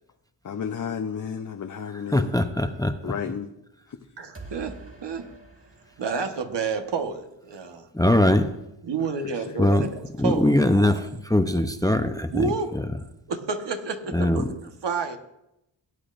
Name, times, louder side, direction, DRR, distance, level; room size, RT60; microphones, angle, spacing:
voice 1, 0.4-2.3 3.0-3.5 3.9-4.2 9.2-9.6, left 7 dB, 40° left, 6 dB, 0.7 m, -33 dB
voice 2, 2.1-3.1 7.9-8.5 9.6-9.9 10.2-13.0 14.1-14.6, left 1 dB, 10° left, 8 dB, 0.6 m, -22 dB
voice 3, 4.2-5.3 6.0-7.9 8.9-9.9 10.2-10.9 12.3-12.7 13.3-14.5 14.8-15.2, right 5 dB, 65° right, 6 dB, 1.4 m, -29 dB
sound 1, 4.3-7.2, right 3 dB, 30° right, 2.7 m, -46 dB
17.5 x 8.4 x 2.6 m, 0.85 s
cardioid pair, 65°, 46 cm